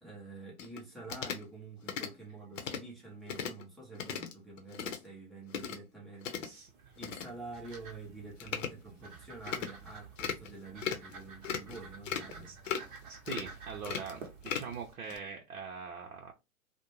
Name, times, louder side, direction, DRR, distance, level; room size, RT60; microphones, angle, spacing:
voice 1, 0.0-6.6 7.0-12.5, right 3 dB, ahead, 0.6 m, -48 dB
sound 1, 0.6-0.8 1.1-1.4 1.9-2.1 2.6-2.8 3.3-3.6 3.9-4.3 4.6-5.0 5.5-5.8 6.2-6.5 7.0-7.3 7.7-7.8 8.4-8.7 9.5-9.7 10.2-10.5 10.8-11.1 11.4-11.8 12.0-12.3 12.6-13.0 13.3-13.5 13.8-14.7 15.1-15.2, left 7 dB, 60° left, 0.7 m, -37 dB
voice 2, 6.4-7.0 12.5-12.6 13.0-14.2 14.5-16.3, right 6 dB, 75° right, 0.7 m, -43 dB
sound 2, 6.5-14.9, right 5 dB, 35° right, 0.8 m, -51 dB
2.5 x 2.1 x 3.0 m
hypercardioid pair, 125°, 43 cm